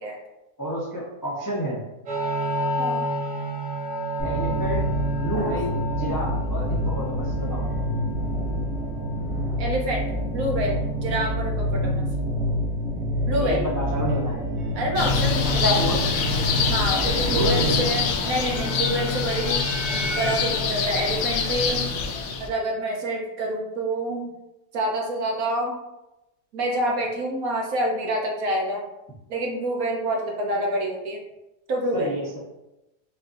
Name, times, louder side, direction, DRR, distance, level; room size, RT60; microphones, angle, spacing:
voice 1, 0.6-1.8 4.2-4.9 5.2-7.6 13.4-14.5 15.6-16.0 17.3-17.9 31.9-32.4, equal, 25° left, -6 dB, 0.4 m, -29 dB
sound 1, 2.1-20.5, right 2 dB, 85° right, 1.9 m, -33 dB
sound 2, 4.2-17.8, left 1 dB, 45° right, 1.3 m, -27 dB
voice 2, 9.6-10.1 10.3-12.0 13.3-13.6 14.7-15.7 16.7-19.6 20.1-22.0 22.4-24.3 24.7-25.8 26.5-28.8 29.3-31.2 31.7-32.1, right 1 dB, 65° right, -1 dB, 1.2 m, -27 dB
sound 3, 15.0-22.5, left 6 dB, 75° left, 1.1 m, -25 dB
5.5 x 2.7 x 2.6 m, 0.94 s
omnidirectional pair, 1.8 m